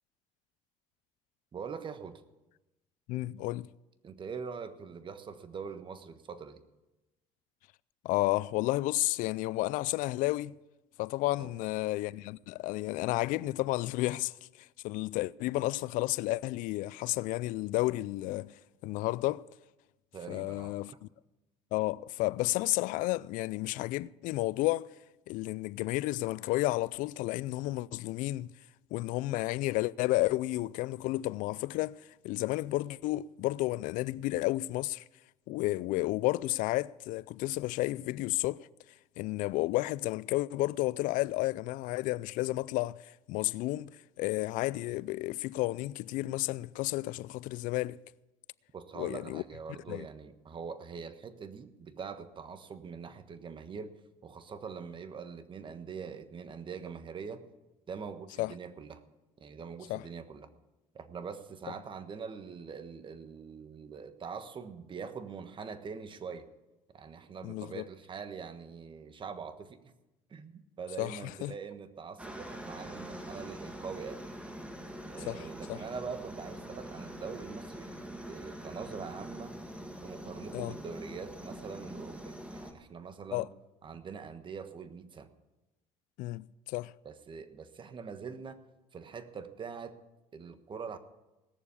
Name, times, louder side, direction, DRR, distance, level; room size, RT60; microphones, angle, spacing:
voice 1, 1.5-2.2 4.0-6.6 11.4-11.5 20.1-21.0 48.7-54.0 54.2-57.4 57.9-59.0 59.4-60.5 60.9-66.5 66.9-69.9 70.3-74.2 75.1-79.6 80.0-83.5 83.8-85.3 87.0-88.6 88.9-90.0 90.3-91.0, right 6 dB, 35° right, 1.4 m, -43 dB
voice 2, 3.1-3.7 8.0-10.6 11.0-18.6 18.8-19.5 20.3-21.1 21.7-24.9 25.3-28.5 28.9-35.0 35.5-38.7 39.2-48.0 49.0-49.4 49.9-50.1 58.4-58.5 59.9-60.0 67.4-67.8 71.0-71.5 75.2-75.8 80.5-80.8 83.3-83.5 86.2-86.9, left 18 dB, 70° left, 0.4 m, -32 dB
Aircraft, 72.2-82.7, equal, 10° right, 1.9 m, -44 dB
18.5 x 7.0 x 8.4 m
supercardioid pair, 95°, 14 cm